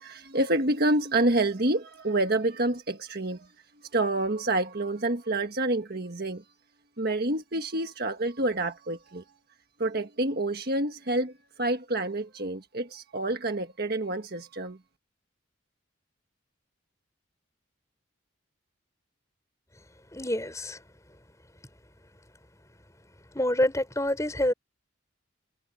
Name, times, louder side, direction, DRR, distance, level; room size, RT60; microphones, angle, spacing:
voice 1, 0.0-3.5 3.9-6.4 7.0-9.2 9.8-11.3 11.6-14.8, right 2 dB, 50° right, 1.5 m, -28 dB
voice 2, 20.1-20.8 23.3-24.5, left 1 dB, 15° left, 5.2 m, -27 dB
head